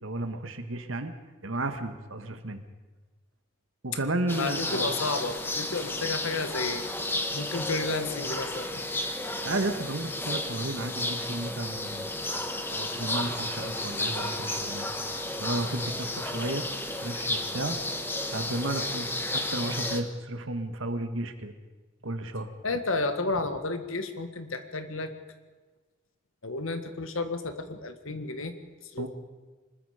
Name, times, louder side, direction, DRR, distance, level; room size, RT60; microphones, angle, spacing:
voice 1, 0.0-1.1 1.4-2.6 3.8-5.0 9.4-12.1 12.7-14.9 15.4-16.7 16.9-17.8 18.3-21.5 22.0-22.5 29.0-29.1, right 2 dB, 70° right, 7 dB, 1.6 m, -33 dB
sound 1, 4.3-20.0, left 2 dB, 10° left, 1.2 m, -32 dB
voice 2, 4.4-6.9 7.3-8.7 22.6-25.1 26.4-28.5 28.9-29.1, left 3 dB, 80° left, 8 dB, 1.7 m, -31 dB
25.0 x 21.0 x 5.0 m, 1.3 s
head